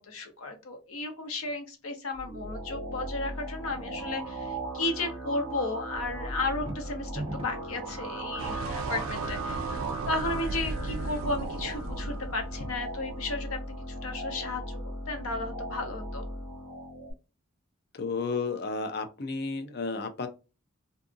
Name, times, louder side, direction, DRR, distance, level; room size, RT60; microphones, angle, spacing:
voice 1, 0.1-13.6 13.9-14.8 15.1-16.2, left 2 dB, 90° left, 5 dB, 0.7 m, -34 dB
sound 1, 2.1-17.1, right 1 dB, 10° right, 1.0 m, -37 dB
sound 2, 6.4-7.8, right 1 dB, 25° right, 0.5 m, -37 dB
sound 3, 8.4-13.5, right 4 dB, 80° right, 0.3 m, -37 dB
voice 2, 17.9-20.3, left 4 dB, 50° left, 8 dB, 0.4 m, -32 dB
2.7 x 2.5 x 2.4 m, 0.30 s
head